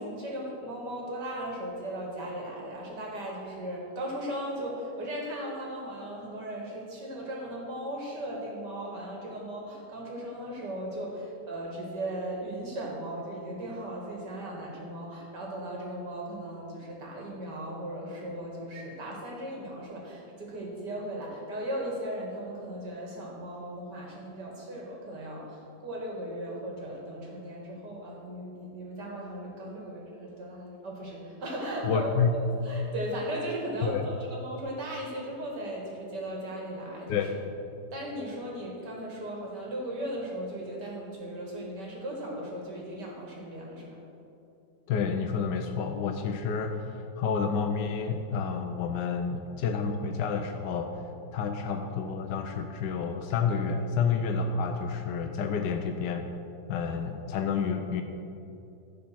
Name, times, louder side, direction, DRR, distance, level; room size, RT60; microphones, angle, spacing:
voice 1, 0.0-37.2 37.9-44.0, right 1 dB, 65° right, -2 dB, 2.7 m, -37 dB
voice 2, 31.8-32.3 33.8-34.0 37.1-37.4 44.9-50.9 51.3-56.2 56.7-58.0, left 6 dB, 75° left, 4 dB, 1.2 m, -29 dB
14.0 x 5.1 x 6.1 m, 2.7 s
omnidirectional pair, 2.0 m